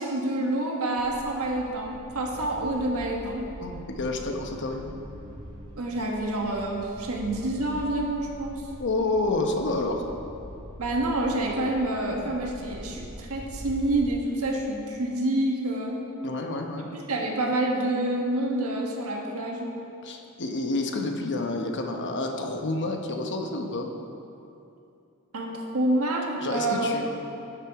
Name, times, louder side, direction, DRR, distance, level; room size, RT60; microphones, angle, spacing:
voice 1, 0.0-3.5 5.8-8.6 10.8-16.0 16.9-19.7 25.3-26.9, right 1 dB, 80° right, 0 dB, 1.5 m, -28 dB
sound 1, 1.0-14.1, equal, 20° right, 2.2 m, -43 dB
voice 2, 3.6-4.9 8.8-10.1 16.2-16.9 20.0-23.9 26.4-27.1, left 2 dB, 55° left, 3 dB, 0.9 m, -29 dB
12.0 x 6.5 x 4.8 m, 2.7 s
head